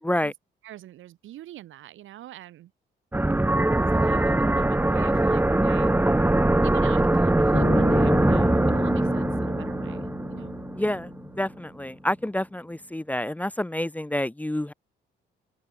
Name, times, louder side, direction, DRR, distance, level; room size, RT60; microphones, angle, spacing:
voice 1, 0.6-2.7 3.9-5.9 6.6-10.6, right 13 dB, 80° right, 3.8 m, -44 dB
sound 1, 3.1-11.5, right 1 dB, 10° right, 1.6 m, -22 dB
sound 2, 7.5-11.8, left 10 dB, 65° left, 3.6 m, -37 dB
voice 2, 10.7-11.1 11.4-14.7, left 1 dB, 5° left, 0.7 m, -28 dB
open air
cardioid pair, 90°, 20 cm